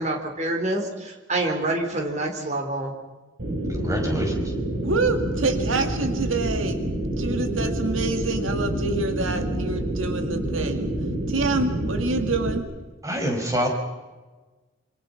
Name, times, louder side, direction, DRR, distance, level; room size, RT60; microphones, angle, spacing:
voice 1, 0.0-2.9, right 2 dB, 35° right, 2 dB, 4.6 m, -27 dB
sound 1, 3.4-12.6, right 1 dB, 60° right, 4.7 m, -27 dB
voice 2, 3.7-4.4 13.0-13.7, equal, 15° right, 1 dB, 5.5 m, -26 dB
voice 3, 4.8-6.8 7.2-10.9 11.3-12.7, right 3 dB, 90° right, 6 dB, 2.1 m, -27 dB
26.5 x 26.0 x 5.8 m, 1.2 s
head